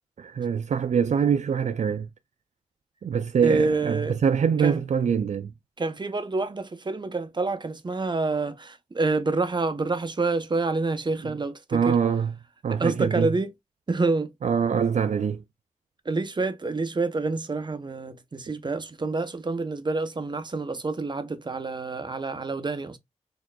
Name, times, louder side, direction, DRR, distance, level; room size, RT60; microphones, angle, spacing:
voice 1, 0.2-2.1 3.0-5.5 11.2-11.3 11.7-12.3 12.6-13.3 14.4-15.4, right 7 dB, 70° right, 0.4 m, -24 dB
voice 2, 3.4-4.2 4.6-4.8 5.8-12.0 12.8-13.5 13.9-14.3 16.1-23.0, right 3 dB, 35° right, 0.7 m, -27 dB
4.4 x 2.9 x 2.2 m
wide cardioid pair, 70°, 13 cm